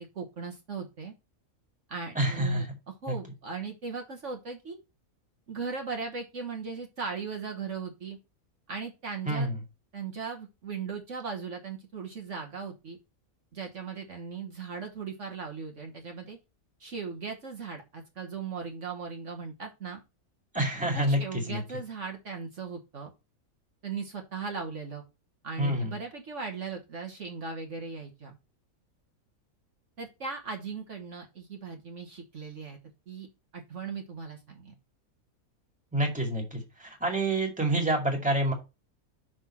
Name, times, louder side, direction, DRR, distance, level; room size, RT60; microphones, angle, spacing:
voice 1, 0.1-1.1 1.9-4.8 5.5-8.2 8.7-9.5 9.9-13.0 13.5-16.4 16.8-20.0 20.9-23.1 23.8-25.0 25.4-28.4 30.0-32.8 33.1-33.3 33.5-34.7, right 5 dB, 55° right, 3 dB, 1.6 m, -38 dB
voice 2, 2.2-2.7 3.1-3.2 9.3-9.5 20.5-21.2 21.5-21.6 25.6-25.9 35.9-38.5, right 1 dB, 5° right, 1 dB, 2.1 m, -27 dB
6.3 x 6.0 x 4.3 m, 0.26 s
omnidirectional pair, 1.5 m